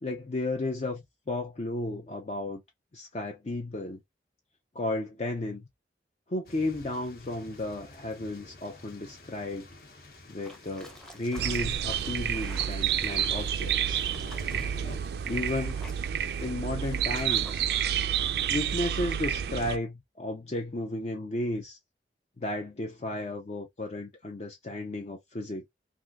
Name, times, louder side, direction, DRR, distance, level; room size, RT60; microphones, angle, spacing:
voice 1, 0.0-2.6 2.9-4.0 4.7-5.7 6.3-9.7 10.3-14.0 15.3-15.8 16.4-17.6 18.5-21.8 22.4-25.7, left 2 dB, 40° left, 0.6 m, -34 dB
sound 1, 6.4-15.0, left 2 dB, 60° left, 1.1 m, -49 dB
sound 2, 10.4-17.9, equal, 5° left, 0.7 m, -51 dB
sound 3, 11.4-19.8, right 9 dB, 65° right, 0.4 m, -29 dB
3.5 x 2.6 x 2.3 m
head